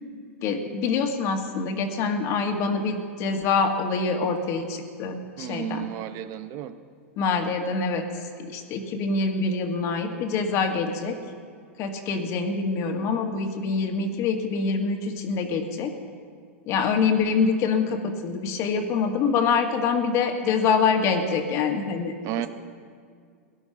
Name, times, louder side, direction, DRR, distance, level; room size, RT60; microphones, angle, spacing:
voice 1, 0.4-5.9 7.2-11.2 11.8-15.9 16.7-22.1, left 5 dB, 40° left, 5 dB, 1.9 m, -25 dB
voice 2, 5.4-6.8 22.2-22.5, right 13 dB, 45° right, 11 dB, 0.8 m, -32 dB
17.5 x 11.5 x 5.8 m, 2.1 s
hypercardioid pair, 115°, 7 cm